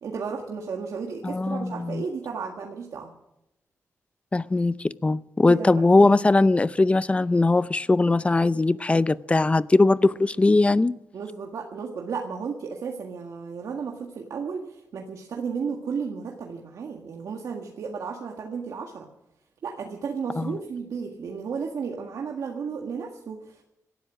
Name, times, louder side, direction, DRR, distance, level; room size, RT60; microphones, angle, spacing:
voice 1, 0.0-3.1 5.5-5.8 11.1-19.1 19.6-23.6, right 5 dB, 85° right, 1.8 m, -33 dB
voice 2, 1.2-2.0 4.3-10.9 20.4-20.6, left 2 dB, 20° left, 0.5 m, -20 dB
18.0 x 13.0 x 6.3 m
wide cardioid pair, 100°, 6 cm